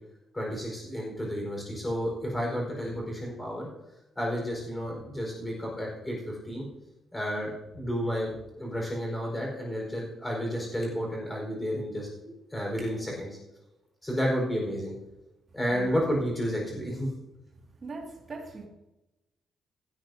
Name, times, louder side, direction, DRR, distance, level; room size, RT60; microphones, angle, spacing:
voice 1, 0.3-3.7 4.1-6.7 7.1-13.3 14.0-14.9 15.5-17.1, equal, 10° left, -1 dB, 4.7 m, -31 dB
voice 2, 15.7-16.0 17.8-18.7, right 3 dB, 30° right, -1 dB, 2.3 m, -40 dB
16.5 x 13.5 x 2.8 m, 0.97 s
cardioid pair, 170°, 0 cm